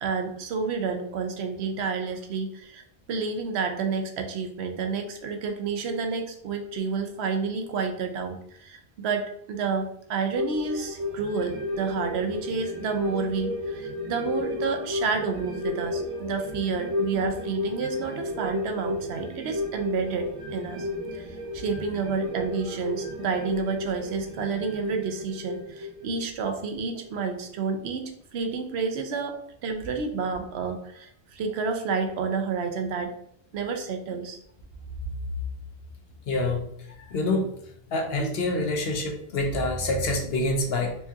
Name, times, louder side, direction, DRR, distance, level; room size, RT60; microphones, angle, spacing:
voice 1, 0.0-29.4 29.6-33.1 33.5-34.4, right 5 dB, 80° right, 5 dB, 0.9 m, -30 dB
sound 1, 10.3-27.1 27.5-27.6, left 2 dB, 40° right, 0.5 m, -33 dB
voice 2, 36.3-36.6 37.0-37.5 37.9-41.0, left 2 dB, 70° left, 2 dB, 1.0 m, -26 dB
4.4 x 2.3 x 2.7 m, 0.70 s
omnidirectional pair, 1.1 m